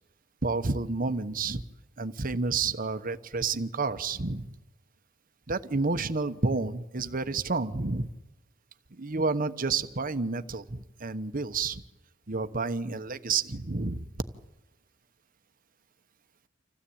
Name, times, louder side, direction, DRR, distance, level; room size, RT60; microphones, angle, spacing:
voice 1, 0.4-1.6 2.0-4.5 5.5-8.1 9.0-11.8 12.3-14.1, right 3 dB, 45° right, 10 dB, 1.0 m, -30 dB
26.5 x 16.0 x 8.7 m, 1.1 s
head